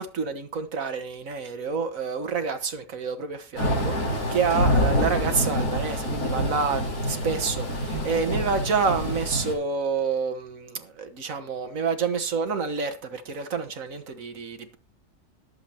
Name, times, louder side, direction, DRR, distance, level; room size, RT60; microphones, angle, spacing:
voice 1, 0.0-14.8, right 5 dB, 60° right, 1.8 m, -28 dB
Thunder / Rain, 3.6-9.5, equal, 85° left, 4.5 m, -26 dB
20.5 x 7.8 x 2.9 m
omnidirectional pair, 1.6 m